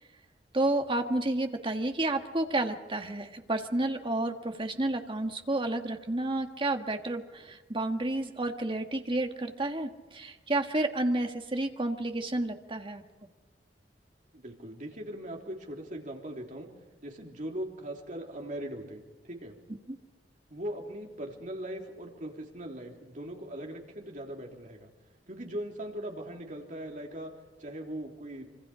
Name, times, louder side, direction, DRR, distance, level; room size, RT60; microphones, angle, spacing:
voice 1, 0.5-13.0 19.9-20.0, right 2 dB, 30° right, 5 dB, 1.6 m, -30 dB
voice 2, 14.3-16.7 17.0-19.6 20.5-24.9 25.3-27.3 27.6-28.4, right 1 dB, 45° right, 1 dB, 3.5 m, -40 dB
26.0 x 25.0 x 5.1 m, 1.2 s
head